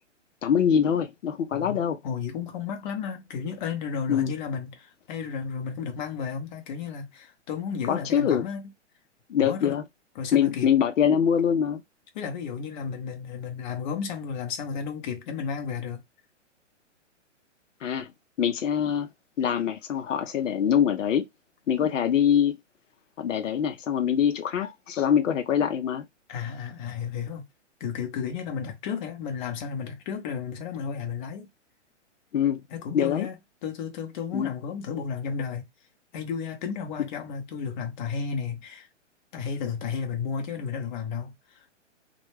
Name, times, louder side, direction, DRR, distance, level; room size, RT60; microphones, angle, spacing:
voice 1, 0.4-2.0 4.1-4.3 7.9-8.5 9.3-9.8 10.3-11.8 17.8-18.1 18.4-19.1 19.4-21.3 21.7-22.6 23.2-26.0 32.3-32.6 32.9-33.3 34.3-34.5, left 8 dB, 80° left, 0.6 m, -24 dB
voice 2, 1.5-8.7 9.4-9.8 10.2-10.7 12.1-16.0 26.3-27.4 27.8-31.5 32.7-35.6 36.1-38.9 39.3-41.7, left 6 dB, 40° left, 0.7 m, -33 dB
2.2 x 2.1 x 3.0 m
hypercardioid pair, 135°, 37 cm